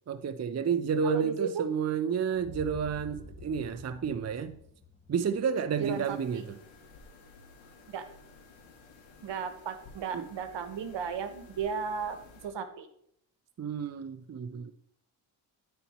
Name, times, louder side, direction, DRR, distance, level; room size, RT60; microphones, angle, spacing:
voice 1, 0.1-4.6 5.1-6.5 10.1-10.3 13.6-14.7, right 6 dB, 35° right, 0.6 m, -31 dB
voice 2, 1.0-1.6 5.8-6.4 7.9-8.0 9.2-12.2 12.4-12.9, right 6 dB, 65° right, 1.2 m, -34 dB
sound 1, 2.3-6.4, left 2 dB, 15° left, 1.5 m, -49 dB
sound 2, 5.8-12.5, left 4 dB, 85° left, 2.0 m, -54 dB
11.0 x 4.4 x 4.3 m
cardioid pair, 60°, 46 cm